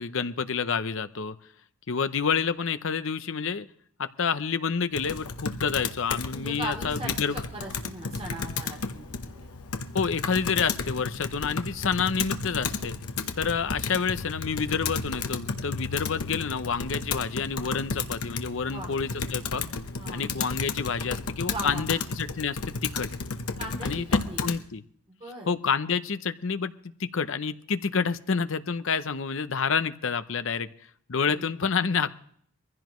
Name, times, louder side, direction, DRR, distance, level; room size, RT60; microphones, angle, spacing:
voice 1, 0.0-1.4 1.9-3.7 4.0-7.4 9.9-12.9 13.4-19.7 20.1-23.1 23.8-24.0 24.4-24.8 25.5-26.7 27.0-30.7 31.1-32.1, left 6 dB, 60° left, 12 dB, 0.7 m, -28 dB
Computer keyboard, 4.9-24.6, left 4 dB, 90° left, 1.0 m, -33 dB
voice 2, 6.3-9.1 9.4-9.5 13.5-13.6 18.6-18.9 20.0-20.3 21.4-22.0 23.6-24.4 25.1-25.5 31.3-31.5, right 1 dB, 25° right, -1 dB, 3.4 m, -39 dB
23.0 x 15.5 x 3.1 m, 0.62 s
head